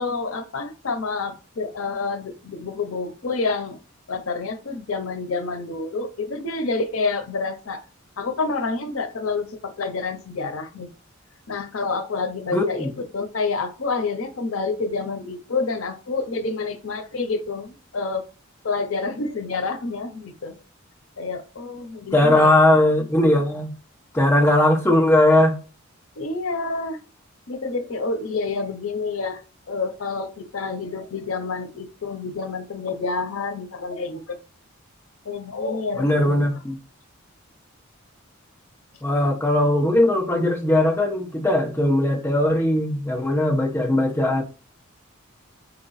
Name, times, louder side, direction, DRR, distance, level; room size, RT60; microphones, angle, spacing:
voice 1, 0.0-3.8 4.1-7.8 8.2-10.9 11.5-18.3 18.6-20.6 21.2-22.6 26.2-27.0 27.5-29.4 29.7-34.4 35.2-36.5, left 3 dB, 85° left, 0.7 m, -28 dB
voice 2, 12.5-12.9 22.1-23.7 24.1-25.5 36.0-36.8 39.0-44.4, left 1 dB, 10° left, 0.8 m, -19 dB
4.4 x 3.0 x 4.0 m
head